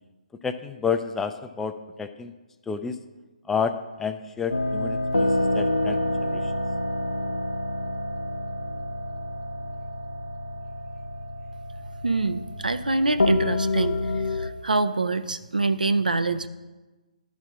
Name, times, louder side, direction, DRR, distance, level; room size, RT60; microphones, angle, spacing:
voice 1, 0.4-1.7 2.0-2.3 2.7-3.0 3.5-6.5, left 6 dB, 5° left, 8 dB, 0.3 m, -30 dB
sound 1, 4.5-14.5, left 1 dB, 90° left, 0.5 m, -28 dB
voice 2, 12.0-16.5, right 3 dB, 85° right, 10 dB, 0.5 m, -25 dB
11.5 x 4.2 x 6.1 m, 1.2 s
figure-of-eight pair, 140°, 4 cm